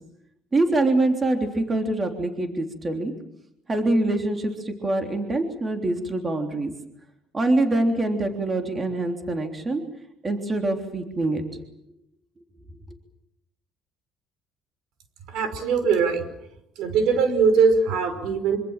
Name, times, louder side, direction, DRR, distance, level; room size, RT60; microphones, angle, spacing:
voice 1, 0.5-3.1 3.7-6.7 7.3-9.8 10.2-11.6, right 2 dB, 25° right, 4 dB, 3.4 m, -24 dB
voice 2, 15.3-16.3 16.8-18.6, right 5 dB, 70° right, 9 dB, 5.3 m, -21 dB
26.5 x 25.5 x 7.5 m, 0.80 s
cardioid pair, 115°, 0 cm